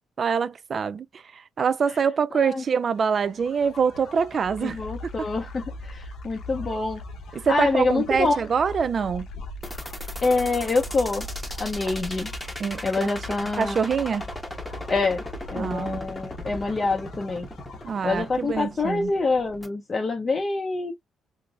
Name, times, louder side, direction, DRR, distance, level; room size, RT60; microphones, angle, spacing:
voice 1, 0.2-1.1 1.3-5.3 7.3-9.3 11.9-12.0 12.6-13.1 13.6-14.3 15.5-16.0 17.8-19.1, right 6 dB, 45° right, 0.3 m, -25 dB
sound 1, 2.9-18.6, left 1 dB, 80° left, 0.8 m, -40 dB
voice 2, 4.6-7.0 7.5-8.4 10.2-11.3 11.6-12.3 12.8-13.8 14.9-15.2 15.5-17.5 18.0-20.9, left 3 dB, 30° left, 0.5 m, -26 dB
sound 2, 9.6-19.7, left 1 dB, 10° left, 0.9 m, -37 dB
3.7 x 2.0 x 2.3 m
cardioid pair, 90°, 0 cm